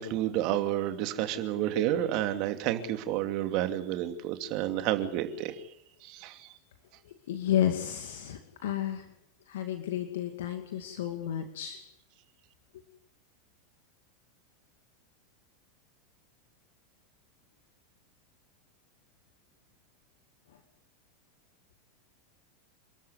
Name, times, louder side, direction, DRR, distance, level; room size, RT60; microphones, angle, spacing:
voice 1, 0.0-5.6 6.0-6.5, right 12 dB, 50° right, 8 dB, 2.7 m, -30 dB
voice 2, 7.3-9.0 9.5-11.8, left 10 dB, 65° left, 6 dB, 2.4 m, -31 dB
29.0 x 13.0 x 9.7 m, 0.79 s
figure-of-eight pair, 85°, 0 cm